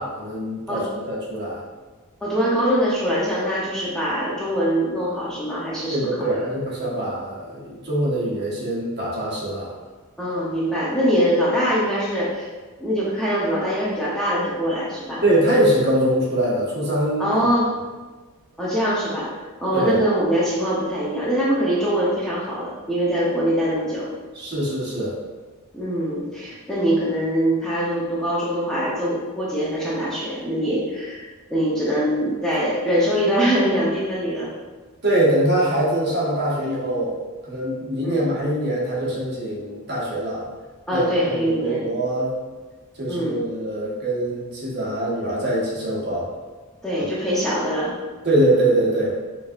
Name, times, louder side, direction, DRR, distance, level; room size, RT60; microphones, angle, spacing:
voice 1, 0.0-1.6 5.9-9.7 15.2-17.4 19.7-20.0 24.3-25.2 35.0-40.4 40.9-41.1 41.4-42.3 43.0-46.3 48.2-49.2, right 1 dB, 50° right, -6 dB, 1.1 m, -23 dB
voice 2, 2.2-6.4 10.2-12.5 12.8-15.2 17.2-17.7 18.6-19.3 19.6-24.1 25.7-34.5 38.0-38.3 40.9-41.9 43.1-43.4 46.8-47.9, equal, 5° left, -8 dB, 0.6 m, -23 dB
5.0 x 2.7 x 2.4 m, 1.3 s
head